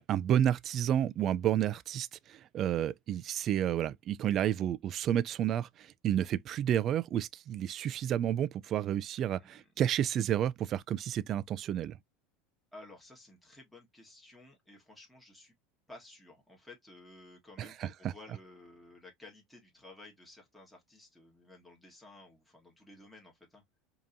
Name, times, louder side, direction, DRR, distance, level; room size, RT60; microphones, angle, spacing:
voice 1, 0.0-12.0 17.6-17.9, right 10 dB, 35° right, 0.3 m, -31 dB
voice 2, 9.4-9.7 12.7-15.5 15.9-23.6, left 2 dB, 5° left, 1.7 m, -54 dB
5.2 x 2.9 x 2.5 m
supercardioid pair, 140°, 0 cm